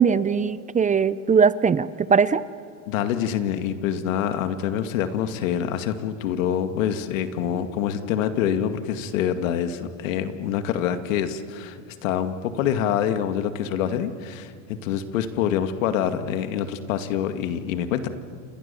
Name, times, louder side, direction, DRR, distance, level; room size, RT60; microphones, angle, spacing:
voice 1, 0.0-2.4, right 6 dB, 20° right, 16 dB, 0.7 m, -20 dB
voice 2, 2.9-11.8 12.0-18.1, left 9 dB, 80° left, 8 dB, 2.2 m, -26 dB
29.5 x 29.0 x 7.0 m, 2.2 s
supercardioid pair, 110°, 39 cm